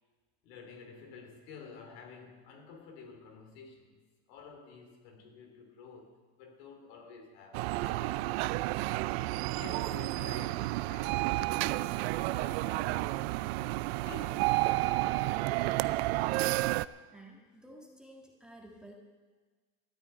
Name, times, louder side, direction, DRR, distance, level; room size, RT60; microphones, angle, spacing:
voice 1, 0.4-4.0 4.3-8.5 9.5-13.2 14.0-14.8, left 5 dB, 70° left, 4 dB, 3.1 m, -50 dB
sound 1, 7.5-16.8, right 19 dB, 75° right, 0.5 m, -31 dB
voice 2, 17.1-18.9, right 1 dB, ahead, -1 dB, 1.7 m, -52 dB
13.5 x 9.0 x 8.8 m, 1.4 s
supercardioid pair, 150°, 32 cm